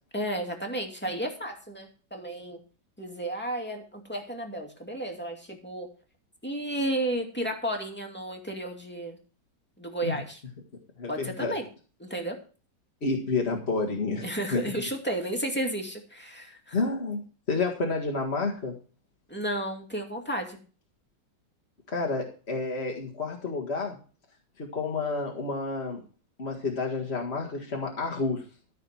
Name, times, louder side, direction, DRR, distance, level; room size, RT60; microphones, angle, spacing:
voice 1, 0.1-2.6 3.0-5.9 6.4-9.2 9.8-10.4 11.1-11.6 12.0-12.4 14.2-16.8 19.3-20.6, right 1 dB, 5° left, 2 dB, 2.2 m, -32 dB
voice 2, 11.0-11.6 13.0-14.6 16.7-18.7 21.9-24.0 24.6-26.0 26.4-28.4, left 3 dB, 35° left, -1 dB, 2.0 m, -30 dB
14.0 x 6.6 x 5.8 m, 0.37 s
omnidirectional pair, 1.9 m